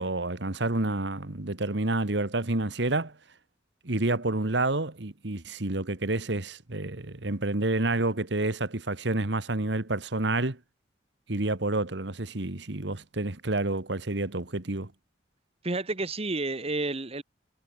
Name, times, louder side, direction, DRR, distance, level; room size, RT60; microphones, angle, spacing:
voice 1, 0.0-3.2 3.8-10.6 11.3-14.9, right 2 dB, 65° right, 1.6 m, -29 dB
voice 2, 15.6-17.2, right 2 dB, 30° right, 1.3 m, -30 dB
head